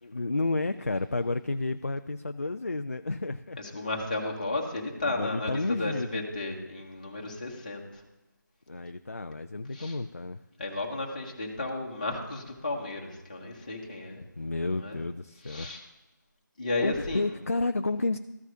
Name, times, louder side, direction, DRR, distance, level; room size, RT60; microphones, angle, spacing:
voice 1, 0.0-3.9 5.0-6.1 8.7-10.4 14.4-15.7 16.8-18.2, left 2 dB, 45° left, 9 dB, 0.4 m, -31 dB
voice 2, 3.6-8.0 9.7-10.0 10.6-14.2 14.8-15.0 15.4-15.8 16.6-17.3, left 2 dB, 25° left, -1 dB, 1.4 m, -33 dB
15.0 x 6.0 x 2.6 m, 1.0 s
figure-of-eight pair, 165°, 11 cm